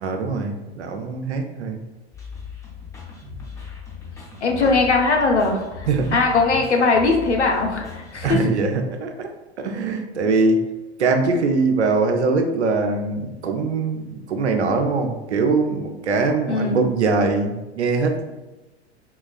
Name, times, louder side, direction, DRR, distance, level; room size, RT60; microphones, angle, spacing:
voice 1, 0.0-1.8 3.2-3.4 4.6-4.7 5.9-6.2 8.2-9.3 9.6-10.6 11.0-18.2, right 3 dB, 80° right, 4 dB, 0.5 m, -22 dB
sound 1, 2.1-8.4, left 6 dB, 10° left, 0.7 m, -38 dB
voice 2, 4.4-8.4 16.5-16.8, left 3 dB, 85° left, 2 dB, 0.6 m, -20 dB
3.6 x 2.3 x 2.3 m, 1.1 s
figure-of-eight pair, 85°, 33 cm